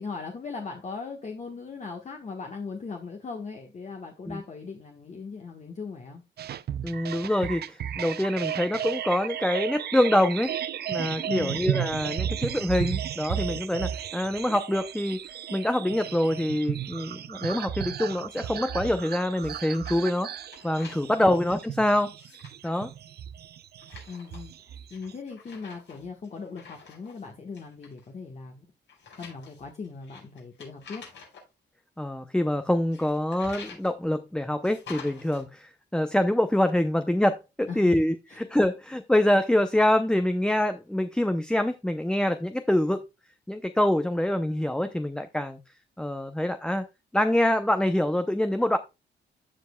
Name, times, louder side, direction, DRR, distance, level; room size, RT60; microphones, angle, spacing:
voice 1, 0.0-6.2 11.3-11.6 21.0-21.4 24.1-28.7 29.1-31.0 37.7-38.0 38.3-38.5, left 4 dB, 40° left, 1.3 m, -39 dB
sound 1, 6.4-25.1, right 10 dB, 55° right, 0.5 m, -34 dB
voice 2, 6.8-10.5 10.9-20.3 20.6-22.1 22.6-22.9 32.0-43.0 43.5-45.6 46.0-46.9 47.1-48.8, left 1 dB, 5° left, 0.5 m, -25 dB
Page Turning, 19.4-20.1 20.4-21.4 22.0-22.8 23.8-24.5 24.9-27.3 27.5-28.1 28.9-31.4 32.9-33.9 34.6-35.4, left 5 dB, 70° left, 5.0 m, -48 dB
15.0 x 5.1 x 2.2 m
cardioid pair, 125°, 19 cm